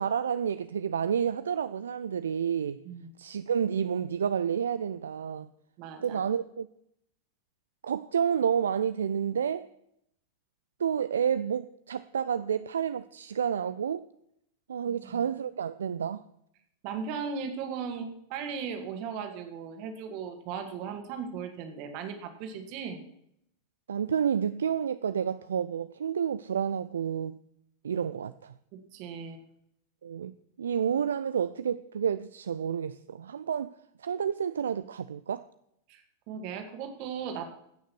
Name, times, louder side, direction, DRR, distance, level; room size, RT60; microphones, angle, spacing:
voice 1, 0.0-2.8 3.2-5.5 6.0-6.7 7.8-9.7 10.8-14.1 14.7-16.2 23.9-27.4 27.8-28.5 30.0-30.3 30.6-33.7 34.0-35.5, right 8 dB, 65° right, 0.4 m, -30 dB
voice 2, 5.8-6.2 14.8-15.2 16.8-23.0 28.7-29.4 35.9-37.4, right 6 dB, 45° right, 2.1 m, -37 dB
16.0 x 6.4 x 6.2 m
figure-of-eight pair, 90°, 0 cm